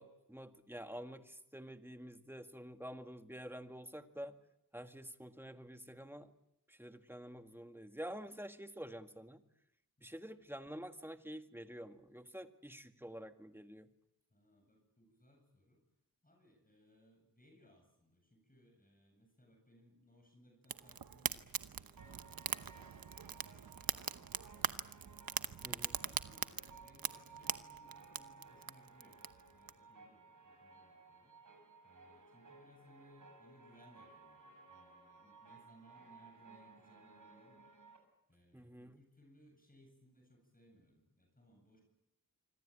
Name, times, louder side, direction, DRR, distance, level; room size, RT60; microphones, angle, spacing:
voice 1, 0.0-4.4 4.7-6.3 6.7-9.4 10.0-13.9 25.6-26.0 38.5-39.0, equal, 5° right, 8 dB, 1.8 m, -48 dB
voice 2, 14.3-15.8 16.2-31.5 31.8-37.8 38.3-41.8, equal, 25° left, 2 dB, 7.7 m, -66 dB
Fire, 20.6-29.7, right 7 dB, 75° right, 1.0 m, -42 dB
sound 1, 22.0-38.0, right 4 dB, 60° right, 6.8 m, -59 dB
26.0 x 25.5 x 8.8 m, 0.82 s
wide cardioid pair, 80°, 35 cm